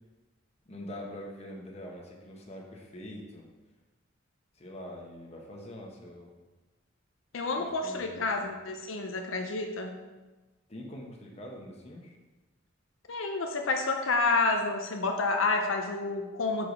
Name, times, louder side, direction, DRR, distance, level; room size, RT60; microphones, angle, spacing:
voice 1, 0.7-3.4 4.6-6.3 7.6-8.5 10.7-12.1, equal, 35° left, 0 dB, 1.0 m, -44 dB
voice 2, 7.3-9.9 13.1-16.7, left 3 dB, 85° left, 4 dB, 0.6 m, -29 dB
4.9 x 4.8 x 5.2 m, 1.2 s
head